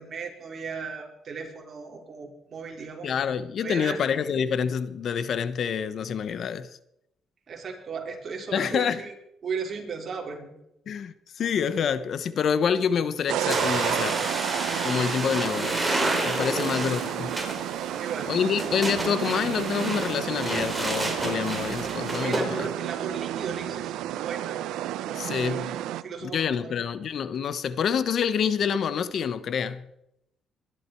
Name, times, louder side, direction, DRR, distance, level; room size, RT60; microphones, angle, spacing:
voice 1, 0.0-3.1 3.6-4.0 7.5-9.1 9.4-10.5 16.5-17.0 17.9-18.3 22.2-24.6 24.9-26.7, right 5 dB, 50° right, 4.1 m, -36 dB
voice 2, 3.0-6.7 8.5-9.0 10.9-14.2 14.8-17.3 18.3-22.7 25.1-25.7 26.2-29.9, left 7 dB, 60° left, 1.0 m, -27 dB
sound 1, 13.3-26.0, right 13 dB, 90° right, 0.7 m, -31 dB
sound 2, 13.5-22.5, right 1 dB, 15° right, 4.4 m, -30 dB
22.0 x 11.5 x 4.6 m
cardioid pair, 90°, 0 cm